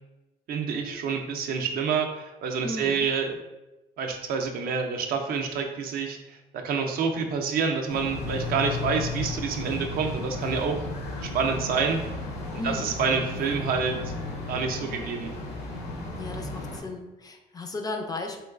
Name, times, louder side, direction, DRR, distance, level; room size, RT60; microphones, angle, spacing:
voice 1, 0.5-3.4 4.0-10.8 11.2-12.0 12.6-14.1 14.5-15.3, right 5 dB, 60° right, 4 dB, 0.5 m, -28 dB
voice 2, 2.6-3.1 12.6-12.9 16.2-18.4, left 2 dB, 25° left, 4 dB, 0.3 m, -35 dB
sound 1, 7.9-16.8, left 3 dB, 80° left, 0.8 m, -34 dB
3.1 x 3.0 x 2.3 m, 1.0 s
cardioid pair, 110°, 17 cm